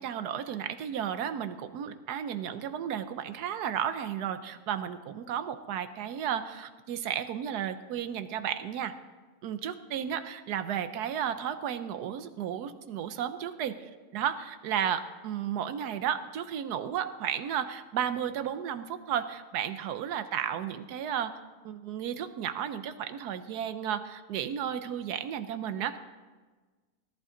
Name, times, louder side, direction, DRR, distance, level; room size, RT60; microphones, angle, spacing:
voice 1, 0.0-9.0 9.4-21.4 21.6-26.0, right 9 dB, 80° right, 11 dB, 1.3 m, -33 dB
18.0 x 11.0 x 3.8 m, 1.3 s
omnidirectional pair, 1.7 m